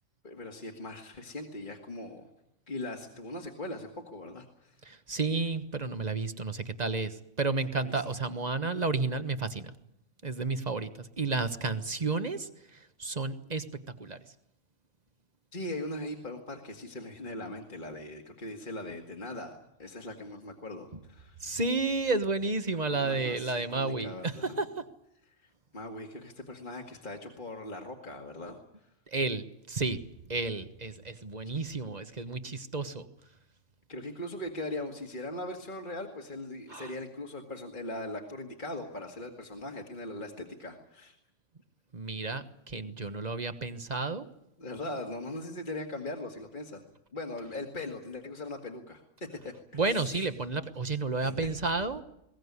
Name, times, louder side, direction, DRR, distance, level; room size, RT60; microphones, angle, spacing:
voice 1, 0.2-2.3 2.7-4.8 7.9-8.2 15.5-19.5 19.8-21.4 22.9-24.6 25.3-28.9 33.9-41.2 44.6-46.8 47.1-49.0 49.4-50.3 51.1-51.6, left 1 dB, 40° left, 2 dB, 2.2 m, -40 dB
voice 2, 4.9-9.7 10.2-10.9 11.2-12.5 13.0-13.6 14.0-14.2 21.4-24.7 29.1-30.0 30.3-33.1 36.7-36.9 41.9-44.3 49.7-52.0, right 3 dB, 35° right, 10 dB, 1.3 m, -31 dB
21.5 x 18.0 x 9.7 m, 0.82 s
omnidirectional pair, 1.2 m